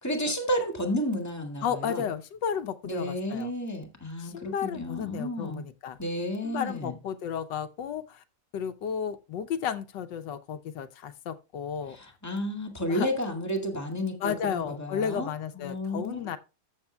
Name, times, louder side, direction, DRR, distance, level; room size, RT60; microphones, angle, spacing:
voice 1, 0.0-2.1 2.8-5.6 6.0-6.9 11.9-16.4, equal, 10° left, 1.9 m, -32 dB
voice 2, 1.6-3.5 4.2-6.0 6.4-8.2 8.5-12.0 12.9-13.1 14.2-16.4, left 8 dB, 85° left, 1.4 m, -33 dB
14.0 x 6.9 x 2.3 m
omnidirectional pair, 1.9 m